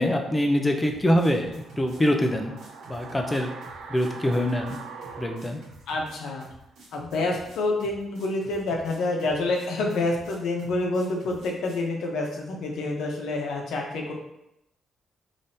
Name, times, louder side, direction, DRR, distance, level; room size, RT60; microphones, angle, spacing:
voice 1, 0.0-2.6 2.9-3.5 3.9-4.8 5.2-5.6, equal, 10° left, 4 dB, 0.4 m, -24 dB
sound 1, 0.8-11.9, right 2 dB, 90° right, 1.6 m, -49 dB
sound 2, 1.2-6.4 6.7-6.8, right 5 dB, 75° right, 0.4 m, -43 dB
voice 2, 5.9-6.5 6.9-14.1, left 2 dB, 85° left, 0 dB, 0.8 m, -28 dB
5.2 x 3.2 x 2.7 m, 0.83 s
cardioid pair, 165°, 0 cm